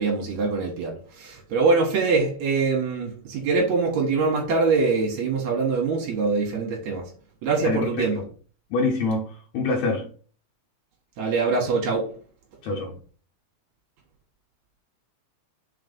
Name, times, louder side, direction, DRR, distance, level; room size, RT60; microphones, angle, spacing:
voice 1, 0.0-7.0 7.4-8.2 11.2-12.1, right 4 dB, 75° right, 2.6 m, -23 dB
voice 2, 7.6-8.3 8.7-10.1 12.6-13.0, left 3 dB, 75° left, 2.3 m, -26 dB
5.8 x 4.1 x 5.3 m
omnidirectional pair, 3.3 m